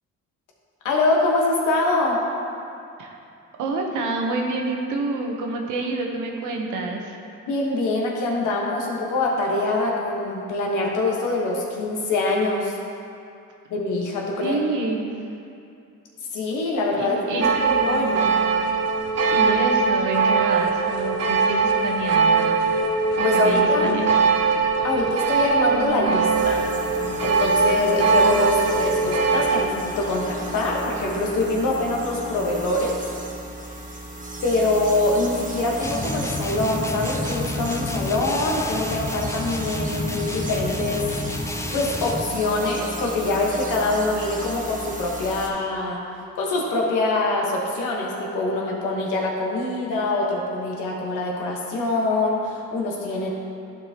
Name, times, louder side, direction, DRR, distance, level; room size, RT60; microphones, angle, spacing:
voice 1, 0.8-2.2 7.5-12.8 13.7-14.6 16.3-18.3 23.2-23.9 24.8-26.6 27.2-33.0 34.4-41.1 41.7-46.0 46.3-53.3, left 2 dB, 85° left, -2 dB, 1.3 m, -24 dB
voice 2, 3.6-7.2 14.4-15.1 17.0-17.4 19.3-22.6 23.2-24.1, right 3 dB, 90° right, 2 dB, 1.0 m, -28 dB
sound 1, 17.4-29.6, right 4 dB, 55° right, 0.6 m, -21 dB
sound 2, 26.3-45.5, right 2 dB, 25° right, 1.3 m, -34 dB
sound 3, 35.8-42.3, left 2 dB, 10° left, 0.4 m, -30 dB
11.5 x 4.7 x 2.9 m, 2.6 s
cardioid pair, 90°, 30 cm